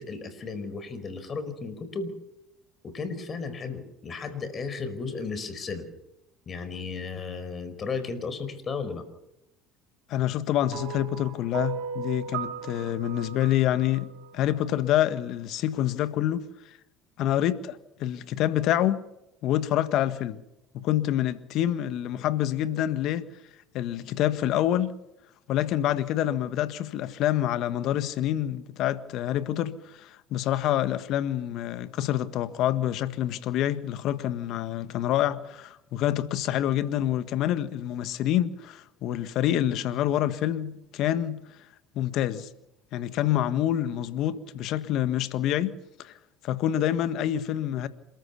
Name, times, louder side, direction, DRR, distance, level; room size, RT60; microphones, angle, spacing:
voice 1, 0.0-2.1 2.8-5.8 6.5-9.0, left 4 dB, 35° left, 4.9 m, -34 dB
voice 2, 10.1-16.4 17.2-19.0 19.4-20.4 20.7-23.3 23.7-24.9 25.5-41.4 41.9-42.5 42.9-46.1 46.4-47.9, left 12 dB, 60° left, 1.6 m, -27 dB
sound 1, 10.7-15.1, right 8 dB, 70° right, 2.8 m, -37 dB
28.0 x 14.0 x 7.1 m
hypercardioid pair, 75°, 0 cm